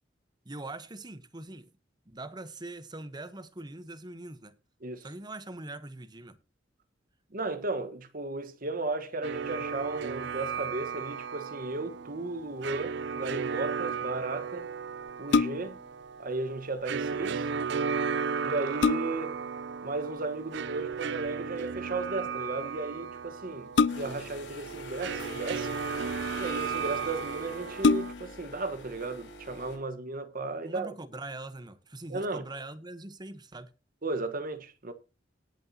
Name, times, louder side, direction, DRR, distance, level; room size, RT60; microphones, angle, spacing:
voice 1, 0.4-1.7 2.1-4.5 5.0-6.4 30.6-33.7, right 2 dB, 25° right, 1.0 m, -42 dB
voice 2, 7.3-14.7 15.2-15.8 16.2-17.5 18.4-19.4 19.8-25.8 26.4-30.9 32.1-32.4 34.0-34.9, right 3 dB, 50° right, 1.3 m, -35 dB
sound 1, 9.2-28.1, right 6 dB, 65° right, 0.5 m, -35 dB
sound 2, 15.1-15.9 17.9-18.0 18.4-19.4 20.9-21.3 23.7-24.4 25.3-26.0 26.8-26.9 27.2-27.3 27.8-28.4 28.9-29.0, left 4 dB, 65° left, 0.5 m, -27 dB
sound 3, 23.9-29.8, left 1 dB, 85° left, 5.8 m, -43 dB
18.5 x 7.4 x 2.9 m
head